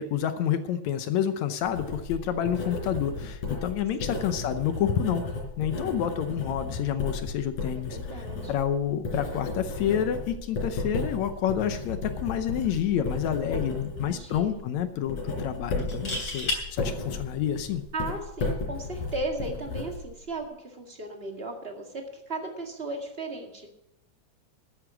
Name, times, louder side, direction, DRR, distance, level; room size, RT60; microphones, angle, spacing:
voice 1, 0.0-5.2 5.6-17.8, left 9 dB, 75° left, 9 dB, 2.0 m, -29 dB
Writing, 1.6-20.5, left 3 dB, 90° left, 5.2 m, -34 dB
voice 2, 7.7-8.5 13.5-14.5 17.9-23.7, right 2 dB, 25° right, 2 dB, 1.7 m, -36 dB
sound 1, 12.9-13.2 13.5-13.6 15.8-16.6 18.4-18.7, left 1 dB, 35° left, 3.7 m, -31 dB
13.5 x 9.7 x 6.1 m, 0.79 s
omnidirectional pair, 3.5 m